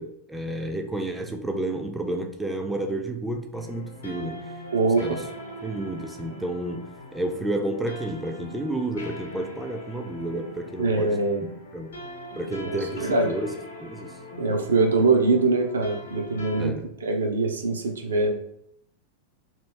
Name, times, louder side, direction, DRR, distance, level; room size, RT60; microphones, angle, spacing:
voice 1, 0.0-4.4 5.0-5.2 5.6-11.1 11.4-11.9 12.4-14.2 14.5-14.7 16.6-16.9, right 1 dB, 5° right, 4 dB, 0.4 m, -31 dB
sound 1, 3.5-16.6, left 1 dB, 70° left, 0.8 m, -41 dB
voice 2, 4.7-5.2 10.8-11.4 12.6-13.3 14.4-16.7 17.0-18.3, right 3 dB, 70° right, 2 dB, 0.5 m, -23 dB
2.9 x 2.7 x 3.3 m, 0.73 s
figure-of-eight pair, 90°, 0 cm